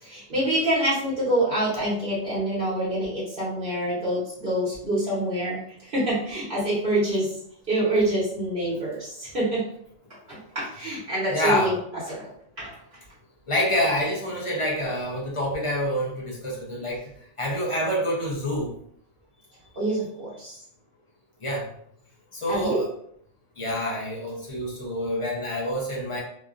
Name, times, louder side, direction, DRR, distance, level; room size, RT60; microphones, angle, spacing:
voice 1, 0.0-7.3 7.7-9.6 10.3-11.8 12.1-12.3 12.6-12.7 19.8-20.6 22.5-22.8, right 1 dB, 55° right, -9 dB, 1.2 m, -26 dB
voice 2, 11.3-11.7 13.5-17.0 17.4-18.7 21.4-21.7 22.3-22.9 23.6-26.2, equal, 35° left, -4 dB, 0.6 m, -27 dB
3.0 x 2.3 x 2.4 m, 0.65 s
omnidirectional pair, 1.1 m